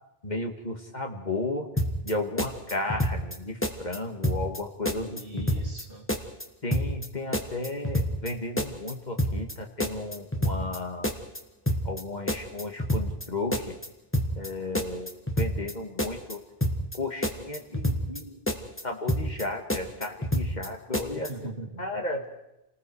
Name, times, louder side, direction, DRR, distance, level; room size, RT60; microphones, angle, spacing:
voice 1, 0.2-1.7 2.0-5.5 6.6-11.1 11.9-13.8 14.4-16.4 16.9-18.4 18.8-21.3 21.8-22.3, left 2 dB, 45° left, 4 dB, 2.1 m, -34 dB
sound 1, 1.8-2.1 2.4-3.4 3.6-4.0 4.2-4.6 4.9-5.8 6.1-6.4 6.7-7.1 7.3-8.3 8.6-8.9 9.2-9.5 9.8-10.8 11.0-11.4 11.7-12.0 12.3-13.3 13.5-13.9 14.1-14.5 14.7-15.7 16.0-16.3 16.6-17.0 17.2-18.2 18.5-18.8 19.1-19.4 19.7-20.7 20.9-21.3, equal, 10° left, 1.6 m, -27 dB
voice 2, 5.0-6.1 20.9-21.8, right 2 dB, 60° right, 1 dB, 3.1 m, -41 dB
29.5 x 19.5 x 4.7 m, 0.89 s
omnidirectional pair, 1.1 m